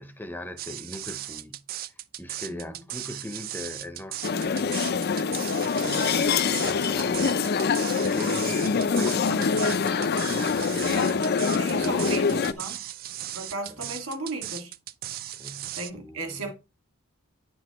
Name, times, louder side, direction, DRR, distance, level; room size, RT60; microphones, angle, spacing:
voice 1, 0.0-5.0 6.2-12.8 13.7-14.0 15.3-16.5, left 1 dB, 10° left, 0.6 m, -40 dB
sound 1, 0.6-15.9, right 13 dB, 40° right, 0.3 m, -37 dB
sound 2, 4.2-12.5, left 5 dB, 45° left, 0.4 m, -25 dB
voice 2, 5.8-6.3 11.6-12.8 13.3-14.7 15.7-16.5, right 2 dB, 65° right, 2.0 m, -35 dB
9.8 x 6.2 x 3.0 m
head